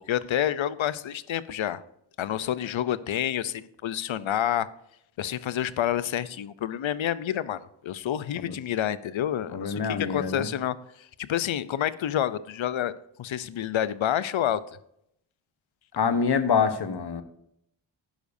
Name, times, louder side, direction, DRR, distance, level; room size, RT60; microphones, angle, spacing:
voice 1, 0.1-1.8 2.2-4.7 5.2-12.9 13.2-14.6, left 11 dB, 75° left, 16 dB, 0.6 m, -28 dB
voice 2, 9.5-10.5 16.0-17.2, left 6 dB, 55° left, 10 dB, 1.0 m, -25 dB
11.5 x 10.0 x 2.7 m, 0.76 s
wide cardioid pair, 110°, 48 cm